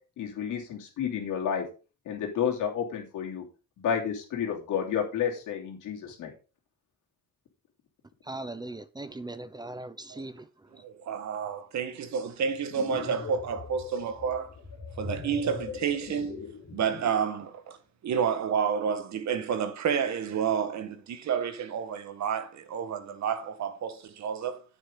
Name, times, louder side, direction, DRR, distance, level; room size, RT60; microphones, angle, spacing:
voice 1, 0.2-1.6 2.0-3.4 3.8-6.3, left 8 dB, 85° left, 3.2 m, -30 dB
voice 2, 8.2-10.8, right 2 dB, 15° right, 0.9 m, -40 dB
voice 3, 10.7-14.5 15.0-16.4 16.7-17.8 18.0-24.6, right 7 dB, 65° right, 1.6 m, -30 dB
sound 1, 12.5-17.3, left 5 dB, 60° left, 2.8 m, -41 dB
9.4 x 8.2 x 3.9 m
cardioid pair, 90°, 30 cm